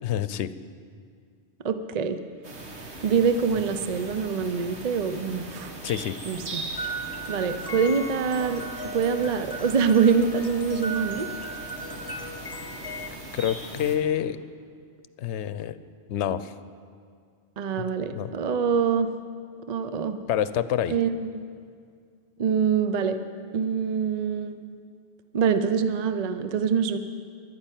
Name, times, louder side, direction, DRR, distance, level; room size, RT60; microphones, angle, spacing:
voice 1, 0.0-0.5 5.8-6.2 13.3-14.4 15.2-15.8 16.1-16.5 18.1-18.3 20.3-21.0, left 10 dB, 85° left, 14 dB, 0.9 m, -27 dB
voice 2, 1.6-2.2 3.0-5.7 6.2-6.6 7.3-8.7 8.9-11.3 17.6-19.1 19.7-20.2 20.9-21.4 22.4-23.2 23.5-24.6 25.3-27.0, right 6 dB, 45° right, 10 dB, 0.6 m, -25 dB
sound 1, 2.4-14.0, right 2 dB, 80° right, 1.8 m, -40 dB
sound 2, 6.7-13.1, right 1 dB, 25° left, 0.6 m, -37 dB
11.5 x 9.9 x 8.9 m, 2.2 s
omnidirectional pair, 1.1 m